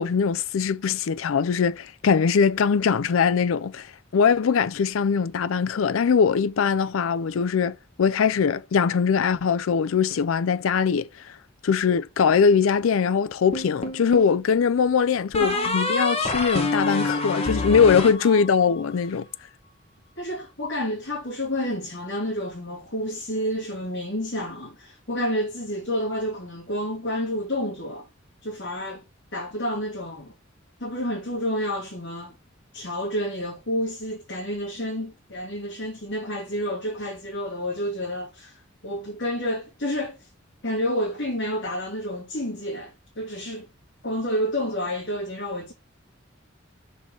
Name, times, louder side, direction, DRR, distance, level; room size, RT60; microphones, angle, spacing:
voice 1, 0.0-11.1 11.6-19.3, left 6 dB, 85° left, 0.4 m, -21 dB
sound 1, 13.5-14.4 15.3-18.8, left 2 dB, 30° left, 1.5 m, -27 dB
voice 2, 15.4-15.7 18.2-18.5 20.2-28.1 28.4-29.0 29.3-30.3 30.8-32.4 32.7-40.3 40.6-43.7 44.0-45.7, equal, 60° left, 2.6 m, -29 dB
6.3 x 5.5 x 3.7 m
head